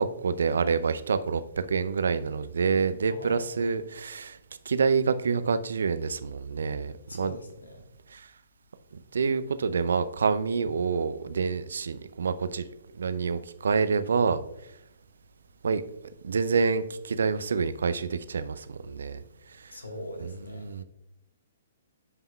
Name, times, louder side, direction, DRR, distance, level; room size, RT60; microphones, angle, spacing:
voice 1, 0.0-4.4 4.7-7.4 8.1-8.3 9.1-12.6 12.9-14.4 15.6-15.8 16.2-19.2 19.6-19.7 20.2-20.8, right 5 dB, 65° right, 12 dB, 0.5 m, -27 dB
voice 2, 3.0-3.6 7.1-7.8 19.7-20.7, left 1 dB, 75° left, 5 dB, 1.4 m, -41 dB
15.5 x 5.4 x 2.3 m, 0.87 s
figure-of-eight pair, 120°, 0 cm